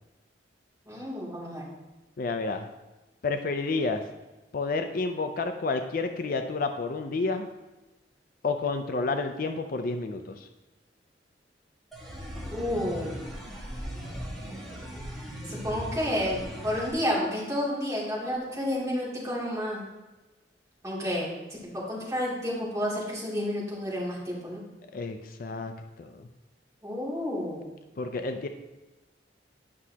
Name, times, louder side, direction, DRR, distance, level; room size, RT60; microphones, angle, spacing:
voice 1, 0.9-1.6 12.5-13.2 15.5-16.4 16.6-19.8 20.8-21.3 21.6-24.6 26.8-27.6, equal, 15° right, -7 dB, 2.6 m, -30 dB
voice 2, 2.2-2.7 3.2-4.0 4.5-7.5 8.4-10.5 24.9-25.7 26.0-26.3 28.0-28.5, left 3 dB, 50° left, 6 dB, 0.4 m, -30 dB
sound 1, 11.9-16.9, equal, ahead, 1.3 m, -38 dB
9.6 x 6.0 x 2.8 m, 1.1 s
head